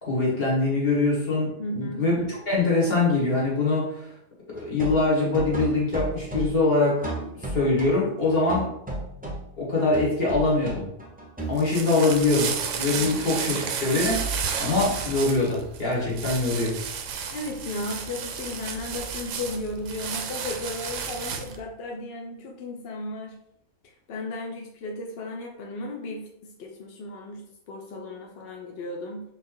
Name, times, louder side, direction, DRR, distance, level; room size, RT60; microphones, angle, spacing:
voice 1, 0.0-4.1 4.5-7.1 7.4-8.7 9.6-10.9 11.5-14.3 14.6-16.7, left 3 dB, 40° left, -4 dB, 1.6 m, -23 dB
voice 2, 1.6-2.1 13.0-13.3 17.3-23.4 23.8-29.2, left 2 dB, 60° left, 0 dB, 0.6 m, -35 dB
sound 1, 4.5-8.0 8.3-9.5 9.8-11.6, right 2 dB, 10° right, 0.4 m, -34 dB
sound 2, 11.4-21.6, right 6 dB, 70° right, 0.8 m, -32 dB
4.1 x 3.1 x 3.8 m, 0.77 s
omnidirectional pair, 1.6 m